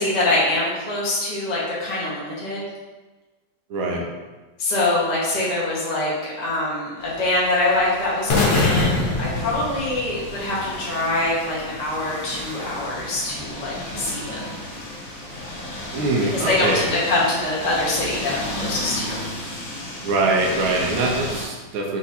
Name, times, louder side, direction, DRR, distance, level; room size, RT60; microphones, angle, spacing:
voice 1, 0.0-2.7 4.6-14.6 16.3-19.3, left 2 dB, 35° left, -7 dB, 0.6 m, -24 dB
voice 2, 3.7-4.1 15.9-16.9 20.0-22.0, right 2 dB, 85° right, -1 dB, 1.5 m, -23 dB
sound 1, 7.0-21.5, left 1 dB, 60° left, 1.9 m, -34 dB
sound 2, 8.3-10.4, left 3 dB, 80° left, 1.8 m, -22 dB
4.6 x 2.5 x 4.1 m, 1.2 s
omnidirectional pair, 2.2 m